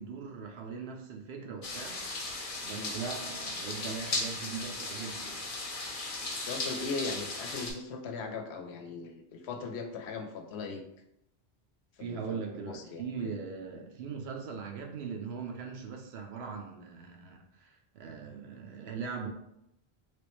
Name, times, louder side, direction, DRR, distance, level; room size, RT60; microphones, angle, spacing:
voice 1, 0.0-2.0 2.6-5.4 12.0-19.3, right 5 dB, 75° right, 1 dB, 0.8 m, -40 dB
sound 1, 1.6-7.7, left 2 dB, 40° left, 0.6 m, -37 dB
voice 2, 6.4-10.8 12.0-13.3, left 4 dB, 80° left, 5 dB, 0.8 m, -39 dB
3.4 x 3.0 x 3.0 m, 0.82 s
omnidirectional pair, 1.1 m